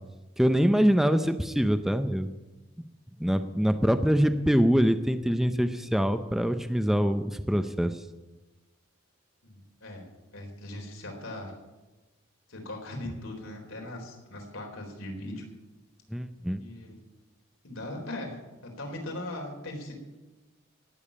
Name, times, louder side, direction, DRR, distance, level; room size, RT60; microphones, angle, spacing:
voice 1, 0.4-2.3 3.2-8.0 16.1-16.6, equal, ahead, 9 dB, 0.5 m, -24 dB
voice 2, 9.4-10.0 10.3-11.5 12.5-15.4 16.6-17.0 17.6-19.9, left 1 dB, 85° left, 1 dB, 4.0 m, -39 dB
18.5 x 7.1 x 8.5 m, 1.1 s
head